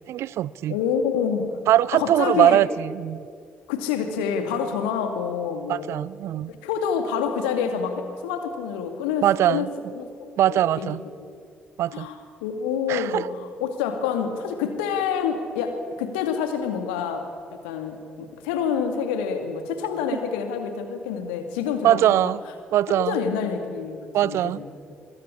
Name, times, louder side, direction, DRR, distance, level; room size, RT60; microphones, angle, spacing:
voice 1, 0.1-0.8 1.7-3.2 5.7-6.5 9.2-9.7 10.4-11.0 11.8-12.1 12.9-13.3 21.8-22.4 22.7-23.2 24.1-24.6, right 12 dB, 60° right, 21 dB, 0.5 m, -21 dB
voice 2, 0.7-1.6 1.9-2.6 3.7-6.0 6.5-11.4 11.9-22.3 22.9-24.7, left 7 dB, 70° left, 7 dB, 2.3 m, -28 dB
23.0 x 22.0 x 8.5 m, 2.2 s
figure-of-eight pair, 45°, 5 cm